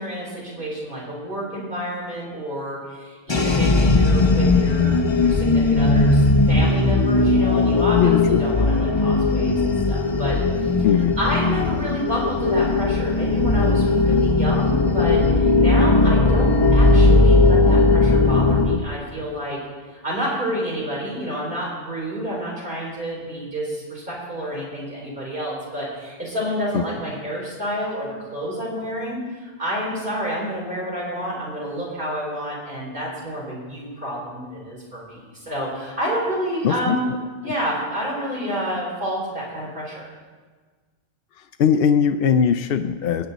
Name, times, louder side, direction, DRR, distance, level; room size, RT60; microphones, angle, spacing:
voice 1, 0.0-10.4 11.2-19.6 20.0-37.1 37.4-40.1, equal, 55° right, -4 dB, 4.2 m, -29 dB
sound 1, 3.3-18.8, left 3 dB, 30° left, 0.8 m, -18 dB
voice 2, 7.9-8.4 10.8-11.2 26.7-26.8 36.6-37.0 41.6-43.3, left 7 dB, 65° left, 7 dB, 0.7 m, -20 dB
20.0 x 9.3 x 4.0 m, 1.4 s
omnidirectional pair, 1.1 m